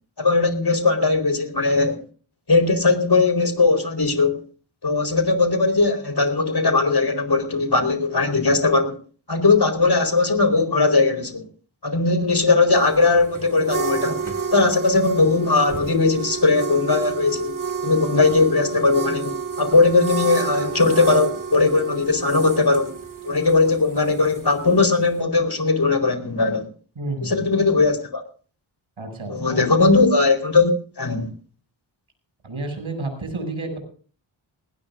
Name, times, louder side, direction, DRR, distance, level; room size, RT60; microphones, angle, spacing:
voice 1, 0.2-2.0 2.5-4.4 4.8-8.9 9.3-11.4 11.8-14.2 14.5-17.6 17.8-22.9 23.2-26.7 27.2-28.2 29.3-30.7 31.0-31.3, left 3 dB, 50° left, 8 dB, 4.5 m, -19 dB
sound 1, 12.7-25.2, right 6 dB, 40° right, 2.4 m, -30 dB
voice 2, 27.0-27.4 29.0-29.7 32.4-33.8, right 2 dB, 75° right, 5 dB, 7.3 m, -30 dB
19.5 x 19.5 x 2.6 m, 0.41 s
cardioid pair, 45°, 49 cm